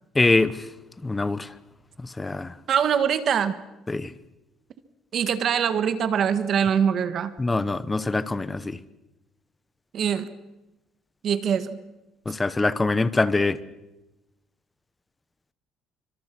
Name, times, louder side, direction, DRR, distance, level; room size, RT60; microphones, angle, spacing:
voice 1, 0.2-0.5 1.0-1.5 2.2-2.5 3.9-4.1 7.4-8.8 12.3-13.6, left 3 dB, 15° left, 0.9 m, -23 dB
voice 2, 2.7-3.5 5.1-7.3 9.9-10.3 11.2-11.8, right 8 dB, 45° right, 1.5 m, -23 dB
26.5 x 25.0 x 6.1 m
cardioid pair, 145°, 0 cm